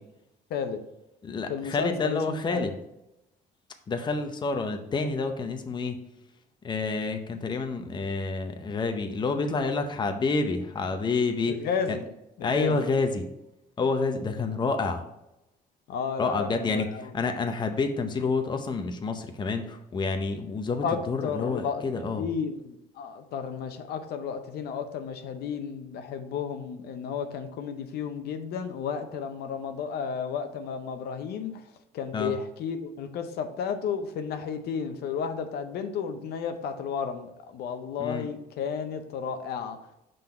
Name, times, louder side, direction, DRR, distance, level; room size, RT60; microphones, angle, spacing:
voice 1, 0.5-0.8 1.5-2.2 2.5-2.7 11.5-12.1 12.4-12.9 15.9-17.1 20.8-21.8 22.2-31.7 31.9-39.8, left 6 dB, 70° left, 7 dB, 0.6 m, -32 dB
voice 2, 1.2-2.8 3.9-6.0 6.6-11.6 11.9-12.0 12.4-13.2 13.8-15.0 16.2-22.2 32.1-32.3 38.0-38.3, left 4 dB, 25° left, 6 dB, 0.7 m, -28 dB
5.7 x 3.9 x 4.3 m, 0.88 s
cardioid pair, 110°, 17 cm